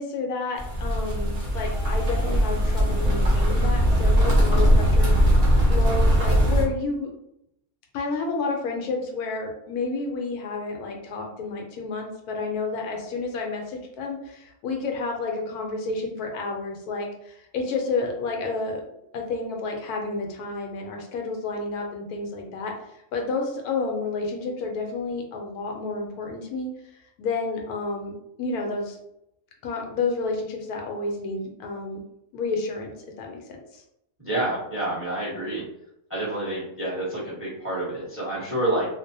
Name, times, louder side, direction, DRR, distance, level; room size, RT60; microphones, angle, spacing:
voice 1, 0.0-5.3 5.7-7.1 7.9-18.8 19.1-26.7 27.2-29.0 29.6-32.0 32.3-33.4 33.7-33.8, left 3 dB, 80° left, 1 dB, 1.1 m, -30 dB
sound 1, 0.6-6.6, equal, 45° right, 0.5 m, -20 dB
voice 2, 34.2-35.6 36.1-38.9, right 1 dB, 10° right, -7 dB, 0.7 m, -28 dB
2.5 x 2.1 x 2.6 m, 0.81 s
omnidirectional pair, 1.6 m